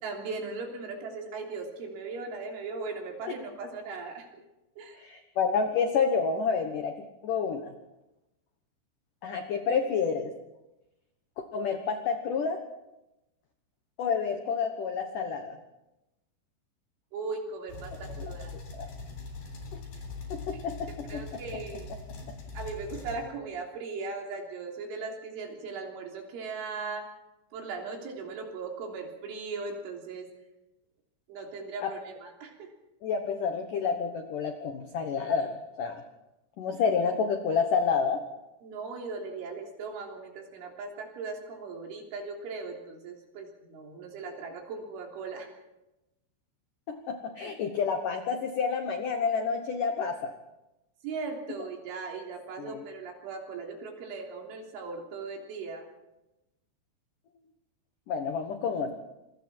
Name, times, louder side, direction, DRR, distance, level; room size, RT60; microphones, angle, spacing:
voice 1, 0.0-4.3 4.8-5.0 17.1-18.5 21.1-21.9 22.5-27.1 27.5-30.3 31.3-32.7 38.6-45.5 47.4-47.6 51.0-55.9, right 4 dB, 70° right, 1 dB, 5.8 m, -38 dB
voice 2, 5.0-6.9 7.2-7.7 9.2-10.3 11.4-12.6 14.0-15.6 18.2-18.3 18.7-18.9 19.7-19.8 20.3-21.2 21.5-21.6 22.3-22.4 31.8-31.9 33.0-36.0 36.6-38.2 46.9-50.3 52.6-52.9 58.1-59.0, left 5 dB, 75° left, 6 dB, 1.9 m, -29 dB
sound 1, 17.7-23.2, left 3 dB, 55° left, 5.2 m, -41 dB
27.5 x 23.0 x 4.5 m, 0.95 s
omnidirectional pair, 5.8 m